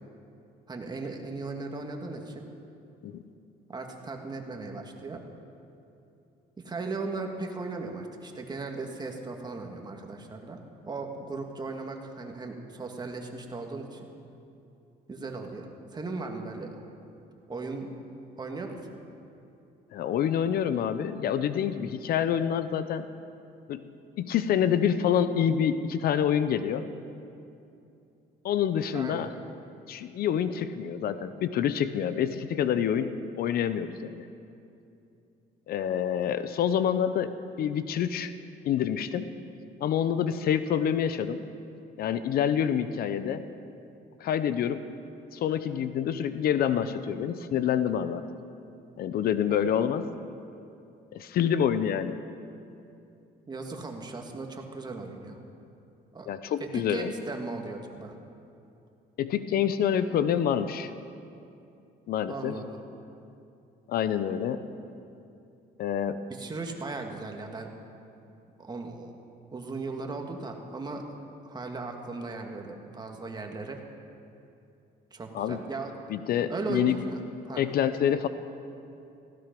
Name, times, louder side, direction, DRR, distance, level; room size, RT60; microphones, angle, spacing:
voice 1, 0.7-2.5 3.7-5.2 6.6-10.6 10.8-14.1 15.1-16.8 17.5-17.9 18.4-18.8 28.9-29.3 49.5-49.6 53.5-55.4 56.1-56.3 56.6-58.2 62.3-62.8 66.3-67.7 68.6-69.1 69.5-71.0 71.4-73.8 75.1-76.0 76.5-77.7, right 3 dB, 25° right, 2 dB, 1.9 m, -37 dB
voice 2, 19.9-23.1 23.7-26.8 28.4-29.3 29.9-34.2 35.7-38.3 38.6-39.3 39.8-41.4 42.0-43.4 44.2-44.8 45.3-48.3 49.0-50.1 51.1-52.2 56.3-57.1 59.2-60.9 62.1-62.6 63.9-64.7 65.8-66.2 75.3-75.6 76.1-77.0 77.6-78.3, left 9 dB, 65° left, 12 dB, 0.7 m, -27 dB
17.0 x 15.5 x 5.3 m, 2.7 s
cardioid pair, 110°, 17 cm